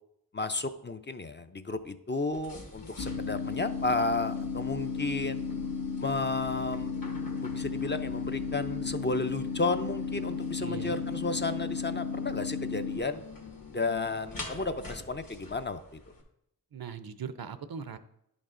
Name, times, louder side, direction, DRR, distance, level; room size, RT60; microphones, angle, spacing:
voice 1, 0.3-5.4 6.0-6.9 7.4-13.2 13.7-16.0, left 3 dB, 30° left, 9 dB, 0.5 m, -33 dB
sound 1, 2.3-16.2, left 3 dB, 60° left, 1.5 m, -45 dB
sound 2, 3.0-13.0, left 5 dB, 75° left, 0.9 m, -34 dB
voice 2, 10.6-11.0 16.7-18.0, right 7 dB, 65° right, 12 dB, 0.6 m, -39 dB
10.0 x 5.3 x 3.7 m, 0.79 s
wide cardioid pair, 50°, 38 cm